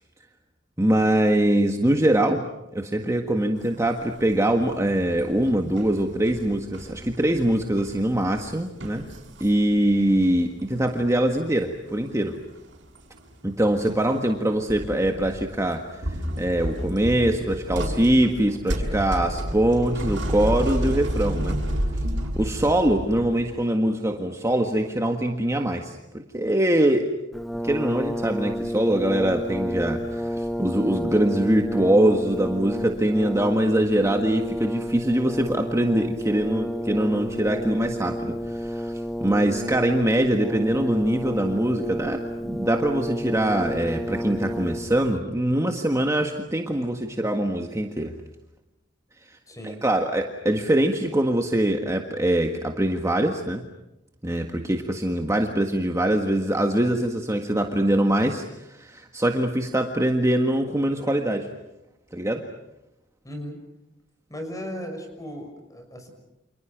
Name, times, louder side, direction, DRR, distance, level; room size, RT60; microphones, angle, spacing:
voice 1, 0.8-2.4 2.7-9.0 9.4-12.4 13.4-16.0 16.4-21.6 22.4-27.1 27.6-38.9 39.2-48.1 49.6-53.6 54.2-58.4 58.7-61.5 62.1-62.4, right 1 dB, 15° right, 3 dB, 1.7 m, -23 dB
sound 1, 3.7-4.4 4.7-10.3 10.6-11.6 11.9-12.1 12.5-13.2 13.7-15.5 15.9-23.5, equal, 65° right, 6.3 m, -31 dB
voice 2, 22.4-22.7 49.5-49.8 63.2-63.6 64.3-66.1, equal, 20° left, 5 dB, 6.1 m, -37 dB
Brass instrument, 27.3-45.1, equal, ahead, 1.1 m, -31 dB
29.5 x 27.5 x 6.0 m, 0.91 s
head